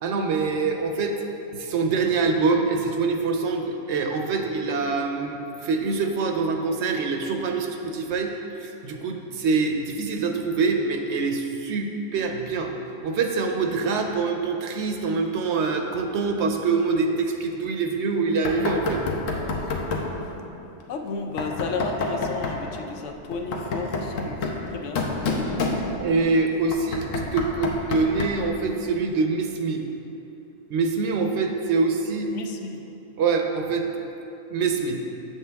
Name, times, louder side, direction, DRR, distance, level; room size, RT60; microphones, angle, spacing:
voice 1, 0.0-1.1 1.5-8.3 8.6-12.7 13.0-19.0 26.0-27.1 27.3-29.8 30.7-32.3 33.2-33.9 34.5-35.0, right 4 dB, 65° right, 3 dB, 0.8 m, -25 dB
Knock, 18.4-20.2 21.4-22.6 23.3-26.2 26.7-28.5, left 3 dB, 90° left, 1.2 m, -28 dB
voice 2, 20.9-25.0 25.4-25.8 32.3-32.8, left 4 dB, 75° left, 4 dB, 0.9 m, -33 dB
7.5 x 7.2 x 3.4 m, 2.9 s
omnidirectional pair, 1.3 m